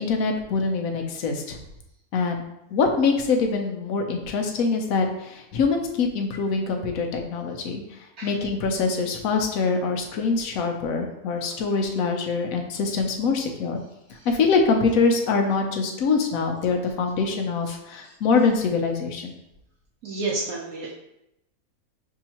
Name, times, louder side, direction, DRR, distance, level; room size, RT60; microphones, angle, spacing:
voice 1, 0.0-1.6 2.1-2.4 2.7-7.8 8.2-13.8 14.3-19.3, left 4 dB, 70° left, 3 dB, 1.1 m, -24 dB
voice 2, 20.0-20.9, right 3 dB, 70° right, -4 dB, 1.1 m, -29 dB
6.1 x 2.7 x 2.9 m, 0.84 s
omnidirectional pair, 1.6 m